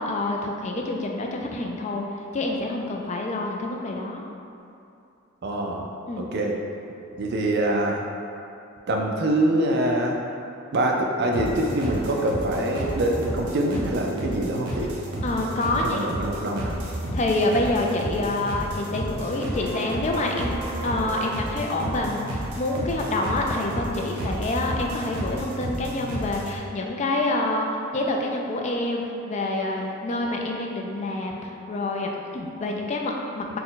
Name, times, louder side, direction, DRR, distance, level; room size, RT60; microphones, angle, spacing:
voice 1, 0.0-2.0 2.3-4.2 6.1-6.3 15.2-16.0 17.1-20.6 20.8-33.6, left 2 dB, 30° left, 1 dB, 0.3 m, -27 dB
voice 2, 5.4-5.9 6.2-6.5 7.2-8.0 8.9-10.2 10.7-14.9 15.8-16.8, right 1 dB, 50° right, 1 dB, 0.4 m, -24 dB
sound 1, 11.3-26.6, right 1 dB, 90° right, 0.8 m, -32 dB
4.1 x 2.2 x 3.9 m, 2.7 s
head